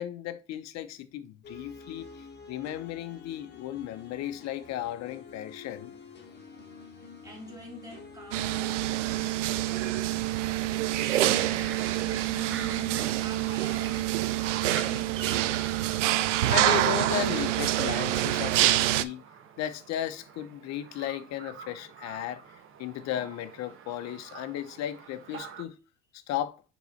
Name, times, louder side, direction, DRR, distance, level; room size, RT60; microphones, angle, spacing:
voice 1, 0.0-2.1 2.5-5.9 16.5-19.2 19.6-22.4 22.8-25.7 26.3-26.6, left 11 dB, 45° left, 0.8 m, -35 dB
sound 1, 1.4-11.8, left 5 dB, 30° left, 1.5 m, -48 dB
voice 2, 6.9-15.6, right 1 dB, 10° right, 2.5 m, -46 dB
sound 2, 8.3-19.0, right 15 dB, 90° right, 0.5 m, -26 dB
sound 3, 11.1-25.6, right 7 dB, 35° right, 1.1 m, -44 dB
4.7 x 4.0 x 5.5 m
hypercardioid pair, 85°, 36 cm